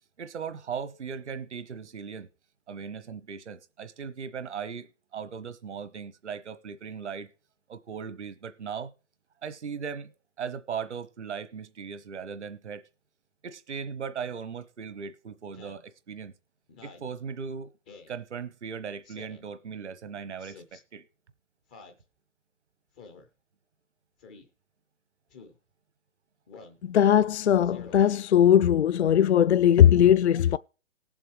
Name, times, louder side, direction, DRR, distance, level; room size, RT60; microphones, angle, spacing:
voice 1, 0.2-2.3 2.7-7.3 7.7-8.9 9.4-12.8 13.4-16.3 16.8-17.7 18.1-21.1, right 6 dB, 70° right, 1.1 m, -38 dB
Speech synthesizer, 15.5-15.8 16.7-17.1 17.9-18.2 19.0-19.5 20.4-20.8 21.7-22.0 23.0-23.3 24.2-24.5 25.3-25.6 26.5-26.8 27.6-28.0, left 4 dB, 10° left, 0.4 m, -49 dB
voice 2, 26.8-30.6, left 10 dB, 65° left, 0.5 m, -19 dB
19.0 x 7.8 x 3.1 m
figure-of-eight pair, 135°, 36 cm